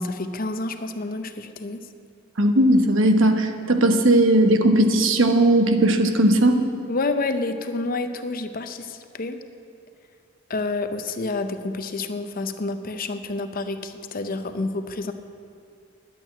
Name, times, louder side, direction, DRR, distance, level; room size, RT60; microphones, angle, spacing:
voice 1, 0.0-1.8 6.9-9.4 10.5-15.1, left 3 dB, 45° left, 9 dB, 0.7 m, -29 dB
voice 2, 2.4-6.6, right 1 dB, 65° right, 6 dB, 1.1 m, -18 dB
10.5 x 9.1 x 8.7 m, 2.5 s
head